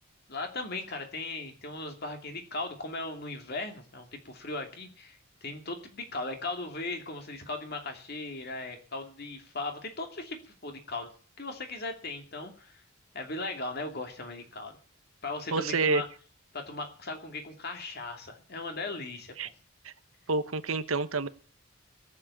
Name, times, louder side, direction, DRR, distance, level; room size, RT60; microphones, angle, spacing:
voice 1, 0.3-11.1 11.4-12.7 13.1-14.8 15.2-16.1 16.5-19.3, left 2 dB, 50° left, 4 dB, 2.8 m, -38 dB
voice 2, 15.5-16.0 19.4-19.5 19.8-19.9 20.3-21.3, right 3 dB, 85° right, 12 dB, 1.1 m, -28 dB
18.0 x 7.7 x 8.5 m, 0.43 s
head